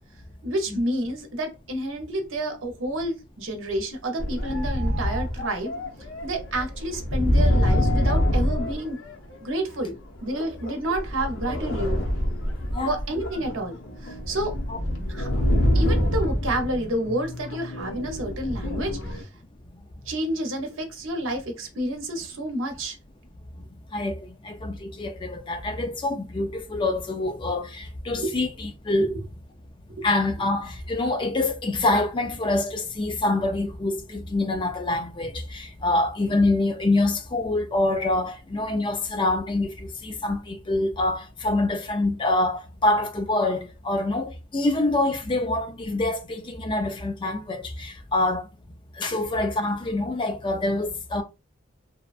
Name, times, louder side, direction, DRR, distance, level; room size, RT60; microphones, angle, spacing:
voice 1, 0.4-5.7 6.2-9.0 9.4-12.0 12.9-13.7 14.0-14.5 15.1-15.3 15.7-19.3 20.1-23.0 28.2-28.4 29.0-29.1 30.0-30.1, right 1 dB, 75° right, 0.8 m, -29 dB
sound 1, 4.2-9.5 10.3-19.2, equal, 75° left, 0.7 m, -26 dB
voice 2, 23.9-29.2 30.0-48.4 49.0-51.2, left 2 dB, 25° left, 0.4 m, -26 dB
2.7 x 2.2 x 2.4 m
head